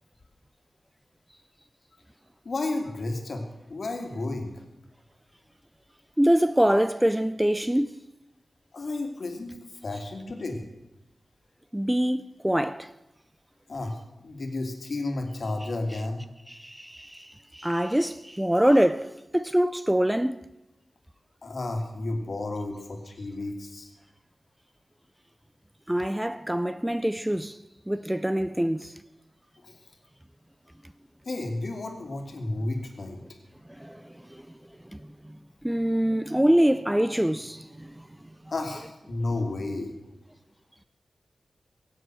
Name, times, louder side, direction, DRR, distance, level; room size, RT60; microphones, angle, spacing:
voice 1, 2.4-3.4 3.7-4.5 8.7-9.5 9.8-10.6 13.7-16.2 21.4-23.9 29.6-29.8 31.3-33.2 38.5-39.9, left 2 dB, 55° left, 2.4 m, -32 dB
voice 2, 6.2-7.9 11.7-12.9 16.5-20.4 25.9-27.6 27.9-28.9 33.8-34.0 34.3-34.4 34.9-35.0 35.6-37.9, right 1 dB, 5° right, 0.4 m, -24 dB
23.0 x 7.9 x 6.3 m
wide cardioid pair, 120°, 0 cm